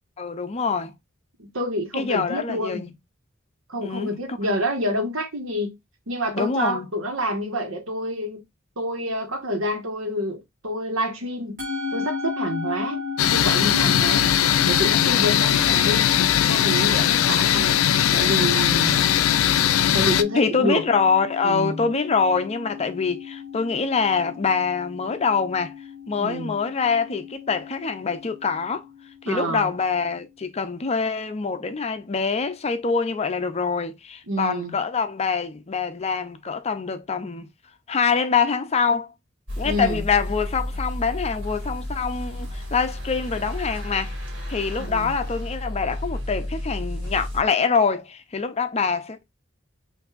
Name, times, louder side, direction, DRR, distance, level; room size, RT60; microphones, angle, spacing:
voice 1, 0.2-0.9 1.9-2.9 3.8-4.4 6.3-6.9 20.3-25.7 26.1-28.8 29.2-37.5 37.9-39.1 39.6-44.1 44.5-49.2, left 5 dB, 30° left, 0.5 m, -25 dB
voice 2, 1.4-2.8 3.7-5.8 6.1-8.4 8.8-11.6 11.9-13.0 13.3-14.3 14.7-16.1 16.5-17.8 18.1-19.0 19.9-20.8 21.4-21.9 26.2-26.5 29.2-29.7 34.3-34.7 39.6-40.0 44.8-45.1, equal, 80° right, 1.3 m, -28 dB
Musical instrument, 11.6-30.1, left 6 dB, 45° right, 1.7 m, -35 dB
sound 1, 13.2-20.2, left 10 dB, 90° left, 0.4 m, -20 dB
sound 2, 39.5-47.4, left 1 dB, 60° right, 1.7 m, -32 dB
5.7 x 2.6 x 2.4 m
head